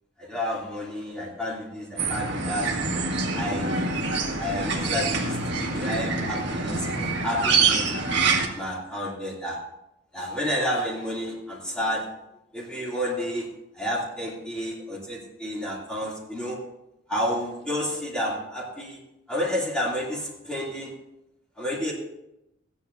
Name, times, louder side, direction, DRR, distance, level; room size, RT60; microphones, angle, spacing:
voice 1, 0.2-3.0 3.3-3.9 4.4-8.0 8.5-9.6 10.1-12.0 12.5-13.5 13.7-16.6 17.1-19.0 19.3-20.9 21.6-21.9, equal, 5° left, -5 dB, 2.8 m, -30 dB
sound 1, 2.0-8.5, right 4 dB, 60° right, 1.9 m, -25 dB
15.5 x 10.5 x 2.7 m, 0.86 s
head